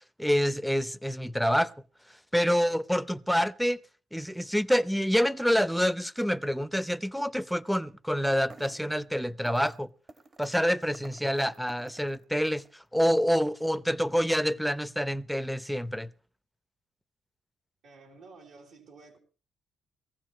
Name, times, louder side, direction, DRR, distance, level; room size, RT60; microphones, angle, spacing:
voice 1, 0.2-1.7 2.3-3.8 4.1-9.9 10.4-16.1, equal, ahead, 0.6 m, -27 dB
sound 1, 8.3-9.0 9.4-9.8 10.1-12.8, right 3 dB, 40° right, 1.5 m, -52 dB
voice 2, 17.8-19.2, right 3 dB, 75° right, 4.1 m, -52 dB
19.0 x 15.5 x 3.1 m
cardioid pair, 90°, 0 cm